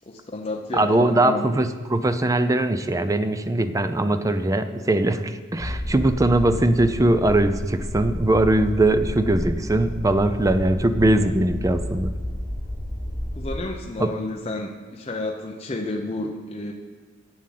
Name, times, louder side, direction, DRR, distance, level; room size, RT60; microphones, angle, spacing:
voice 1, 0.1-1.6 5.6-5.8 13.4-16.7, left 2 dB, 30° left, 1 dB, 0.7 m, -31 dB
voice 2, 0.7-12.1 14.0-14.1, right 1 dB, 15° right, 10 dB, 0.4 m, -21 dB
sound 1, 5.6-13.6, equal, 35° right, 2.9 m, -31 dB
8.5 x 7.4 x 7.6 m, 1.5 s
head